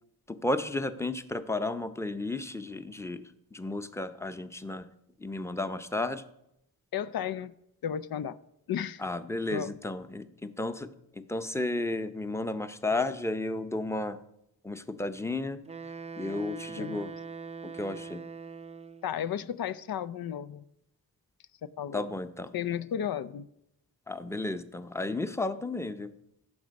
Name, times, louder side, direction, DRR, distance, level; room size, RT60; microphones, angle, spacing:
voice 1, 0.3-4.9 5.2-6.2 9.0-14.2 14.6-15.6 16.2-17.1 17.6-18.2 21.9-22.5 24.1-26.1, left 2 dB, 10° left, 11 dB, 0.7 m, -33 dB
voice 2, 6.9-7.5 7.8-8.4 8.7-9.0 9.5-9.7 16.8-17.0 19.0-20.6 21.6-22.1 22.5-23.5, left 9 dB, 75° left, 16 dB, 0.6 m, -33 dB
Wind instrument woodwind instrument, 15.7-19.1, right 5 dB, 20° right, 0.4 m, -42 dB
15.5 x 6.1 x 5.2 m, 0.80 s
cardioid pair, 80°, 36 cm